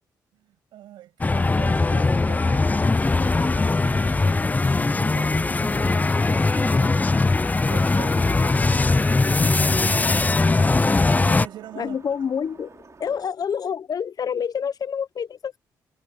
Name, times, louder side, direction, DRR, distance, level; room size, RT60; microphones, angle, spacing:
voice 1, 0.3-7.0 7.7-10.4 11.1-12.0, right 13 dB, 90° right, 7.1 m, -43 dB
sound 1, 1.2-11.5, left 3 dB, 20° left, 0.5 m, -20 dB
sound 2, 8.2-13.2, right 4 dB, 40° right, 4.1 m, -49 dB
voice 2, 11.8-15.6, left 7 dB, 55° left, 0.9 m, -28 dB
cardioid pair, 65°, 8 cm